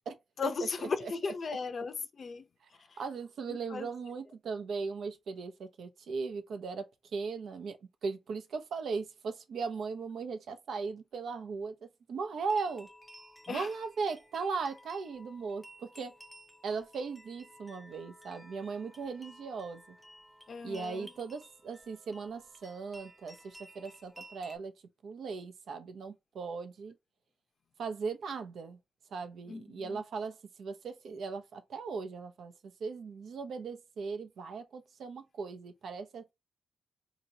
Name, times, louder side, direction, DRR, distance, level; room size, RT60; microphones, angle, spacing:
voice 1, 0.4-2.4 3.5-3.9 13.5-13.7 20.5-21.1 29.5-30.0, left 5 dB, 50° left, 0.6 m, -36 dB
voice 2, 1.0-1.3 3.0-6.9 7.1-12.9 13.5-16.1 16.6-20.0 20.6-24.7 25.0-26.9 27.8-28.8 29.1-32.5 32.8-36.3, right 5 dB, 75° right, 0.7 m, -38 dB
sound 1, 12.4-24.6, equal, 5° left, 0.6 m, -55 dB
4.0 x 2.9 x 2.8 m
cardioid pair, 90°, 0 cm